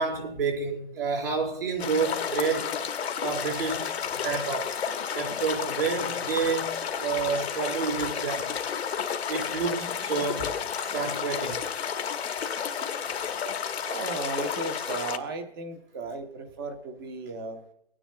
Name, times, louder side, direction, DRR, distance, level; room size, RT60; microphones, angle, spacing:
voice 1, 0.0-2.7 3.2-3.9 4.2-4.7 5.1-8.5 9.3-10.5 10.9-11.6, right 5 dB, 65° right, 4.2 m, -29 dB
sound 1, 1.8-15.2, left 7 dB, 85° left, 1.2 m, -31 dB
voice 2, 13.8-17.6, right 3 dB, 20° right, 0.9 m, -35 dB
23.5 x 9.9 x 2.2 m
hypercardioid pair, 175°, 31 cm